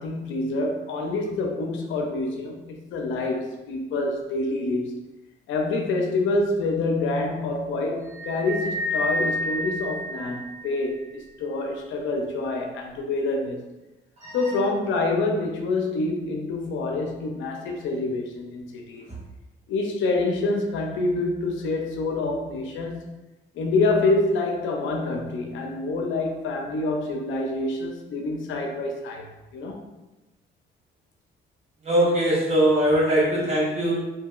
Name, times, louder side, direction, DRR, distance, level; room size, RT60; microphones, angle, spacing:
voice 1, 0.0-5.0 5.5-13.7 14.3-19.0 19.7-23.1 23.5-29.9, left 2 dB, 80° left, 2 dB, 0.5 m, -27 dB
sound 1, 8.1-10.8, equal, 15° right, 0.7 m, -29 dB
voice 2, 31.8-34.0, right 1 dB, 35° right, -8 dB, 1.4 m, -21 dB
2.7 x 2.7 x 2.3 m, 1.0 s
cardioid pair, 90°, 20 cm